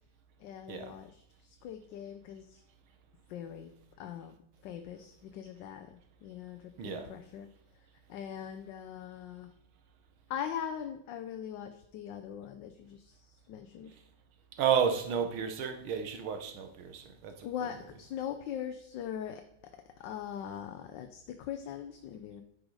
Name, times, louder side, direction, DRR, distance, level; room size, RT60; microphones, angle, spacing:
voice 1, 0.4-1.2 1.6-2.6 3.3-3.7 4.0-4.3 4.6-7.5 8.1-9.5 10.3-13.2 13.5-13.9 17.4-19.4 20.0-22.4, left 9 dB, 70° left, 1.3 m, -41 dB
voice 2, 6.8-7.1 14.5-18.0, right 7 dB, 85° right, 1.8 m, -32 dB
10.0 x 6.3 x 4.8 m
omnidirectional pair, 2.2 m